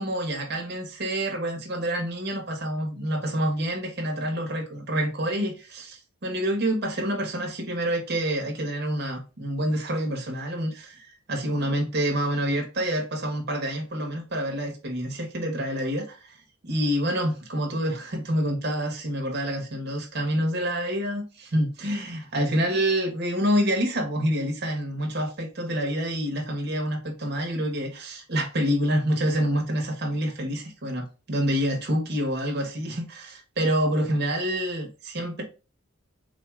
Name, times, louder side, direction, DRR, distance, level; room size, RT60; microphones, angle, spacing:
voice 1, 0.0-16.4 16.6-35.4, equal, 50° right, 0.8 m, -27 dB
3.8 x 2.3 x 2.9 m
head